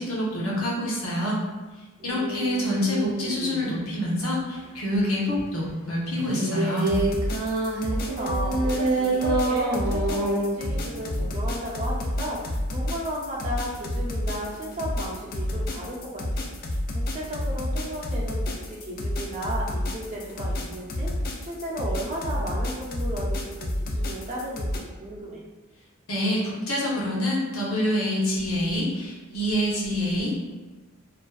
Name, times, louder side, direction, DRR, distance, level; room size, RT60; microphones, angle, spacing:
voice 1, 0.0-1.4 2.0-6.9 26.1-30.3, left 1 dB, 80° left, -5 dB, 0.7 m, -26 dB
voice 2, 2.0-2.6 7.9-25.4, equal, 35° right, -5 dB, 0.5 m, -35 dB
sound 1, 2.1-3.9 6.1-11.2, right 2 dB, 90° right, 0.5 m, -27 dB
sound 2, 6.8-24.8, left 1 dB, 45° left, 0.3 m, -29 dB
2.4 x 2.2 x 2.3 m, 1.3 s
head